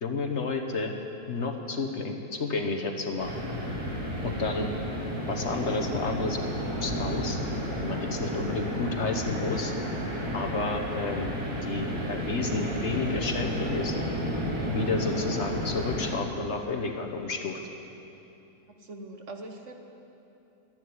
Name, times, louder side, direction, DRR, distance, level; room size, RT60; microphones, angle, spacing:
voice 1, 0.0-0.9 1.3-3.4 4.2-4.7 5.3-6.4 6.8-7.4 7.8-9.7 10.3-11.3 11.6-13.9 14.7-17.6, left 3 dB, 50° left, 4 dB, 1.3 m, -31 dB
sound 1, 3.2-16.2, equal, 90° right, 3.1 m, -32 dB
voice 2, 18.7-19.7, right 2 dB, 55° right, 4 dB, 1.4 m, -42 dB
12.5 x 11.0 x 9.5 m, 2.8 s
omnidirectional pair, 1.6 m